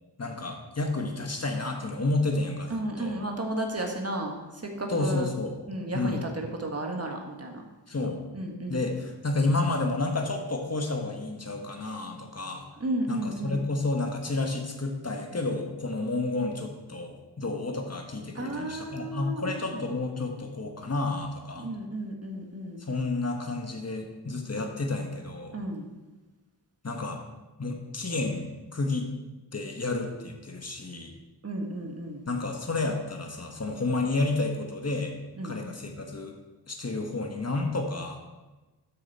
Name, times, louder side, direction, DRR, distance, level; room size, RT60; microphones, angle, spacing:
voice 1, 0.2-3.2 4.9-5.5 5.9-6.2 7.9-8.2 8.7-12.6 13.1-21.7 22.9-25.6 26.8-27.2 27.6-29.1 29.5-31.1 32.3-35.1 35.4-36.3 36.7-38.2, left 2 dB, 35° left, 3 dB, 1.4 m, -30 dB
voice 2, 2.7-5.3 5.7-7.6 8.3-8.8 12.8-13.6 18.3-19.8 21.5-22.8 25.5-25.9 31.4-32.2 35.4-35.6, right 1 dB, 35° right, 2 dB, 1.6 m, -33 dB
13.0 x 5.0 x 4.2 m, 1.2 s
cardioid pair, 50°, 42 cm